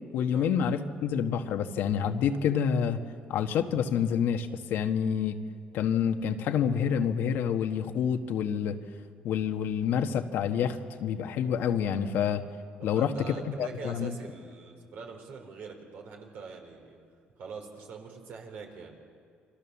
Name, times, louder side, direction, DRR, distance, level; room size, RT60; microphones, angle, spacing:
voice 1, 0.1-3.0 3.3-5.4 5.7-8.8 9.2-12.4 12.8-13.1 13.6-14.1, left 8 dB, 75° left, 6 dB, 1.5 m, -28 dB
voice 2, 12.8-17.0 17.4-19.0, right 5 dB, 70° right, 2 dB, 4.6 m, -43 dB
28.5 x 23.5 x 7.2 m, 2.3 s
cardioid pair, 95°, 4 cm